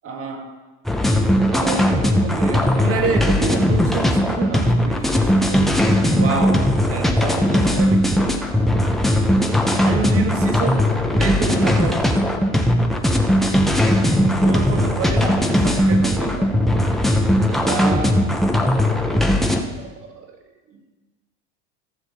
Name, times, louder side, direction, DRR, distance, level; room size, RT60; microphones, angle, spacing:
voice 1, 0.0-0.6 1.5-8.4 9.8-12.3 14.4-16.6 17.5-18.4 19.7-20.4 20.7-20.8, right 4 dB, 40° right, 1.8 m, -28 dB
sound 1, 0.8-19.6, equal, ahead, 1.0 m, -18 dB
15.0 x 6.5 x 4.3 m
supercardioid pair, 100°, 35 cm